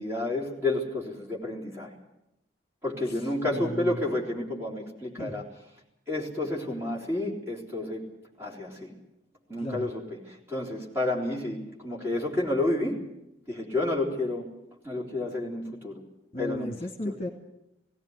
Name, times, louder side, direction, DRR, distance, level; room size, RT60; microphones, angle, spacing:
voice 1, 0.0-1.9 2.8-5.4 6.1-8.1 8.4-8.9 9.5-13.1 13.5-14.5 14.8-16.0 16.4-16.7 17.0-17.1, left 2 dB, 15° right, -3 dB, 4.0 m, -30 dB
voice 2, 3.1-4.0 5.2-5.3 9.6-9.9 16.3-17.3, left 1 dB, 30° left, 3 dB, 2.1 m, -35 dB
17.5 x 17.5 x 9.9 m, 0.87 s
head